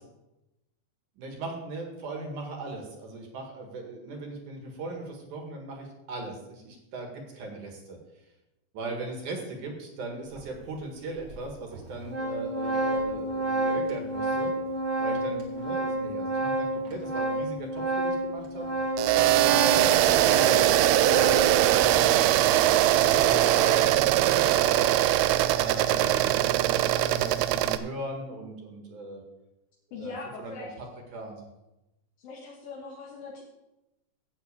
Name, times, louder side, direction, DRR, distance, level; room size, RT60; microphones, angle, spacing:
voice 1, 1.2-8.0 8.7-14.5 15.0-24.9 25.5-29.2 30.0-30.7 31.1-31.4, right 2 dB, 60° right, 2 dB, 2.9 m, -39 dB
Organ, 10.4-10.5 11.3-11.4 11.7-21.6, right 1 dB, 40° right, 2.3 m, -30 dB
sound 1, 19.0-27.8, right 13 dB, 85° right, 2.5 m, -21 dB
voice 2, 25.7-26.1 29.9-30.7 32.2-33.4, left 4 dB, 75° left, -2 dB, 3.0 m, -41 dB
12.5 x 4.2 x 8.2 m, 0.95 s
omnidirectional pair, 4.4 m